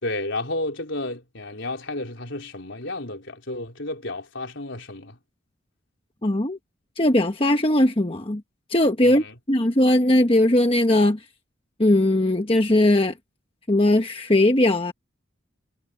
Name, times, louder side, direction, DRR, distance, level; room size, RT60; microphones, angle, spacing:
voice 1, 0.0-5.2 9.0-9.3, left 2 dB, 65° left, 4.1 m, -32 dB
voice 2, 6.2-6.6 7.0-8.4 8.7-11.2 11.8-13.1 13.7-14.9, left 1 dB, 25° left, 1.2 m, -19 dB
head